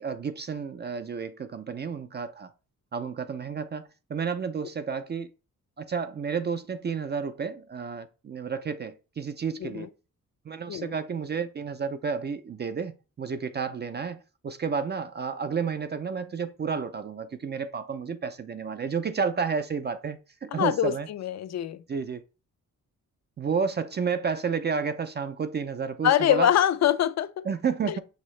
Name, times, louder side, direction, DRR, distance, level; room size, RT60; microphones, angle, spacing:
voice 1, 0.0-2.5 2.9-5.3 5.8-9.9 10.5-21.1 21.9-22.2 23.4-26.5 27.4-28.0, right 6 dB, 30° right, 0.4 m, -31 dB
voice 2, 20.5-21.8 26.0-27.5 27.9-28.0, left 11 dB, 55° left, 0.4 m, -24 dB
6.1 x 2.8 x 3.1 m
cardioid pair, 90°, 33 cm